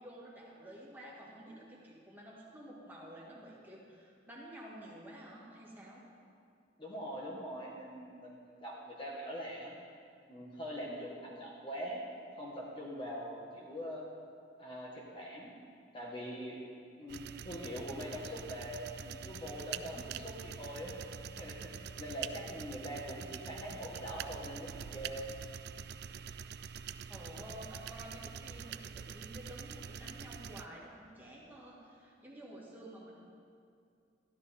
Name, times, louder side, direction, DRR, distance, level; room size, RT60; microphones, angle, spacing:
voice 1, 0.0-6.0 26.8-33.2, right 1 dB, 10° right, -5 dB, 2.3 m, -51 dB
voice 2, 6.8-9.8 10.3-12.0 12.3-14.0 14.6-15.5 15.9-16.6 17.0-20.9 21.4-25.2, equal, 30° left, -3 dB, 1.4 m, -43 dB
sound 1, 17.1-30.7, right 7 dB, 60° right, 0.3 m, -45 dB
13.5 x 11.5 x 4.3 m, 2.3 s
head